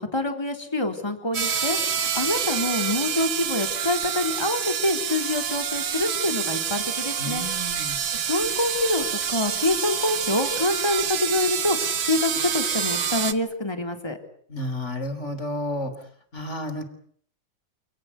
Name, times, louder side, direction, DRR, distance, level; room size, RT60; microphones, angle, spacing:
voice 1, 0.0-7.5 8.1-11.8 12.1-14.2, left 2 dB, 10° left, 5 dB, 3.5 m, -26 dB
sound 1, 1.3-13.3, right 7 dB, 55° right, 1.6 m, -27 dB
voice 2, 7.2-8.0 14.5-15.9 16.3-16.8, left 1 dB, 35° left, 10 dB, 3.9 m, -31 dB
29.0 x 18.5 x 8.3 m, 0.62 s
omnidirectional pair, 2.1 m